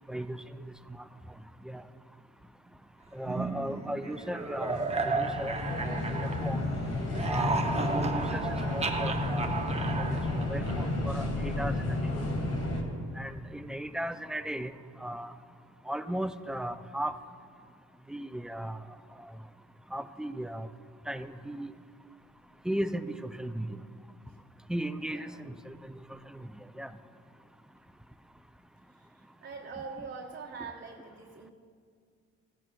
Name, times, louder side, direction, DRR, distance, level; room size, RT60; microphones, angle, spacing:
voice 1, 0.1-0.4 1.7-1.8 3.1-5.6 5.8-6.7 7.2-7.6 8.1-8.4 8.7-9.6 10.0-12.0 13.2-14.7 15.0-15.3 15.9-17.1 18.1-18.8 19.9-20.7 21.1-21.7 22.7-23.8 24.7-25.7 26.1-26.5 26.8-26.9, right 1 dB, ahead, 11 dB, 0.3 m, -36 dB
sound 1, 3.2-6.7 7.0-11.1, right 3 dB, 20° right, 0.7 m, -34 dB
sound 2, 4.2-12.8, left 2 dB, 55° left, 1.7 m, -32 dB
voice 2, 25.0-25.5 29.0-31.5, right 4 dB, 40° right, -1 dB, 0.9 m, -44 dB
15.5 x 10.5 x 2.3 m, 2.1 s
cardioid pair, 90°, 30 cm